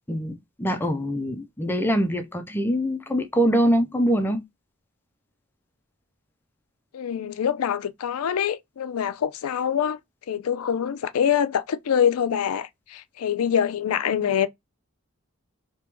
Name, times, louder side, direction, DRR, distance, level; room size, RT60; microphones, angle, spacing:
voice 1, 0.1-4.4, equal, 10° left, 0.5 m, -24 dB
voice 2, 6.9-10.0 10.3-14.5, left 8 dB, 85° left, 0.4 m, -25 dB
3.0 x 2.9 x 3.3 m
head